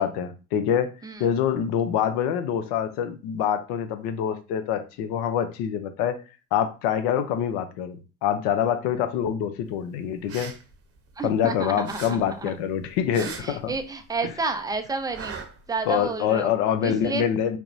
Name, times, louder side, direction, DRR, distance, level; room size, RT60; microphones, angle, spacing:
voice 1, 0.0-0.9 1.2-6.2 6.5-10.5 11.2-13.7 15.9-17.6, left 8 dB, 60° left, 0.7 m, -25 dB
sound 1, 10.1-11.5 11.8-14.2 14.5-16.1, right 5 dB, 30° right, 0.8 m, -40 dB
voice 2, 11.2-12.5 13.2-15.3 15.7-16.5 16.8-17.3, right 4 dB, 10° right, 0.3 m, -31 dB
4.3 x 2.0 x 2.6 m
hypercardioid pair, 75°, 44 cm